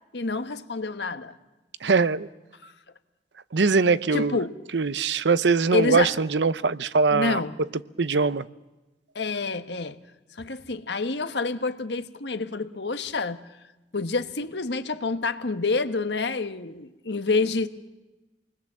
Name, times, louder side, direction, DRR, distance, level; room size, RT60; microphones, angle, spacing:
voice 1, 0.1-1.4 2.6-2.7 4.1-4.5 5.7-6.1 7.1-7.6 9.1-10.0 10.4-13.4 13.9-17.7, left 3 dB, 70° left, 1.3 m, -28 dB
voice 2, 1.8-2.3 3.5-4.4 4.7-7.4 8.0-8.5, right 4 dB, 80° right, 0.7 m, -22 dB
28.5 x 20.5 x 7.5 m
head